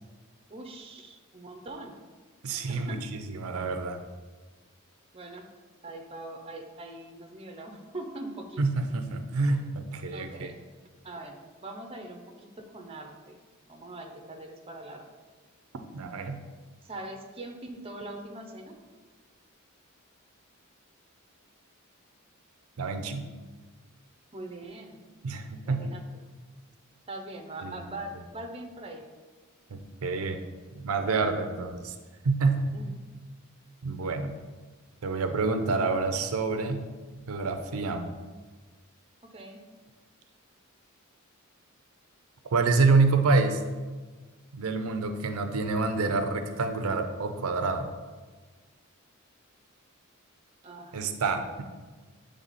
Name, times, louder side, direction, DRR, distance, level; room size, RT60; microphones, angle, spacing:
voice 1, 0.5-1.9 2.7-3.0 5.1-5.5 5.8-8.6 10.1-10.7 11.0-13.4 13.7-15.0 16.8-18.8 24.3-25.0 25.6-26.2 27.1-29.0 32.7-32.9 39.3-39.6 50.6-51.1 51.5-51.6, right 2 dB, 25° right, 3 dB, 0.6 m, -42 dB
voice 2, 2.4-3.0 3.3-4.0 8.6-10.5 15.9-16.4 22.8-23.3 25.2-25.8 27.6-27.7 29.7-30.4 30.7-31.9 32.2-33.0 33.8-34.3 35.0-36.8 37.1-38.1 42.5-43.6 44.5-47.9 50.9-51.6, right 3 dB, 80° right, 7 dB, 0.5 m, -27 dB
7.6 x 3.3 x 4.1 m, 1.4 s
head